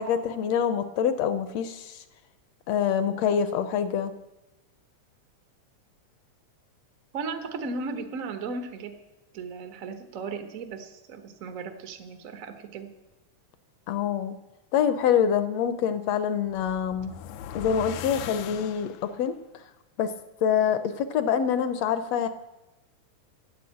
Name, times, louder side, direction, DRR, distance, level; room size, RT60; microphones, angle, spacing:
voice 1, 0.0-2.0 2.7-4.1 13.9-14.4 14.7-17.1 17.5-18.9 19.2-19.3 20.0-20.1 20.4-22.3, left 8 dB, 70° left, 10 dB, 1.7 m, -25 dB
voice 2, 7.1-9.0 9.3-12.9, right 4 dB, 70° right, 6 dB, 0.7 m, -36 dB
sound 1, 16.5-19.3, left 9 dB, 90° left, 2.1 m, -39 dB
12.0 x 8.3 x 8.5 m, 0.97 s
omnidirectional pair, 3.4 m